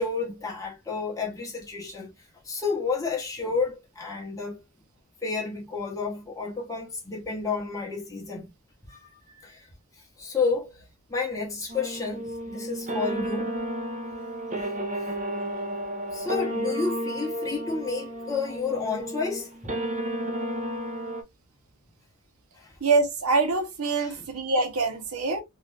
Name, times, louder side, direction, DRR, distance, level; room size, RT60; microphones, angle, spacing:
voice 1, 0.0-2.1 2.4-4.6 5.2-8.5 8.9-9.7 9.9-13.6 15.0-15.1 16.1-19.7 22.5-22.8 24.0-24.3, left 4 dB, 15° left, 0.8 m, -31 dB
sound 1, 11.7-21.2, right 1 dB, 35° right, 0.6 m, -32 dB
voice 2, 22.8-25.4, right 3 dB, 85° right, 0.9 m, -25 dB
2.6 x 2.4 x 3.3 m
head